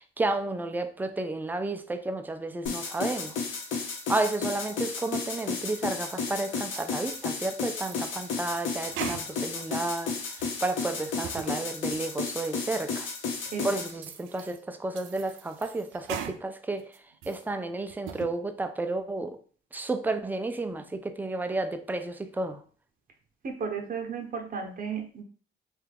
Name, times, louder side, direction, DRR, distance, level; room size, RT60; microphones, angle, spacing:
voice 1, 0.0-3.3 4.1-13.1 13.6-16.9 17.3-19.4 19.7-22.6, right 2 dB, 10° right, 0.3 m, -32 dB
sound 1, 2.7-13.9, left 4 dB, 75° left, 0.8 m, -33 dB
sound 2, 6.7-7.3 7.7-9.6 10.0-10.6 11.1-11.5 11.9-12.0 12.6-12.7 13.3-13.4 13.9-14.6 14.9-16.4 16.8-17.4 17.9-18.3, right 9 dB, 90° right, 0.4 m, -40 dB
voice 2, 23.4-25.2, right 6 dB, 45° right, 0.8 m, -34 dB
3.2 x 2.3 x 3.3 m
cardioid pair, 90°, 20 cm